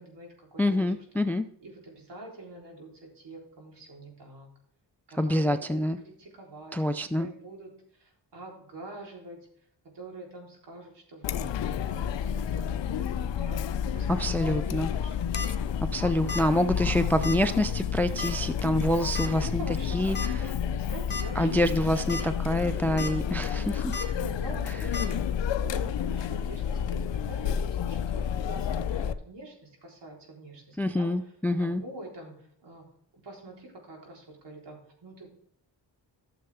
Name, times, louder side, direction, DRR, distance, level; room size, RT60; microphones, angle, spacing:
voice 1, 0.0-0.9 1.6-4.5 5.1-9.5 9.9-15.3 15.9-16.2 19.2-22.0 23.7-31.1 31.6-32.9 33.2-35.3, right 1 dB, 65° right, -1 dB, 3.9 m, -45 dB
voice 2, 0.6-1.5 5.2-6.0 6.7-7.3 14.1-14.9 15.8-19.6 19.9-20.2 21.4-23.8 30.8-31.8, left 1 dB, 5° left, 11 dB, 0.4 m, -26 dB
Chatter, 11.2-29.1, left 8 dB, 80° left, 0.6 m, -30 dB
sound 1, 15.1-15.5 16.3-16.5 16.8-16.9 17.2-17.4 18.2-18.5 19.2-19.3 20.2-20.3 20.7-20.8 21.1-21.2 21.9-22.2 22.6-23.1 23.9-24.1 24.9-25.1, left 3 dB, 25° left, 1.5 m, -34 dB
13.5 x 6.9 x 3.5 m, 0.66 s
wide cardioid pair, 110°, 44 cm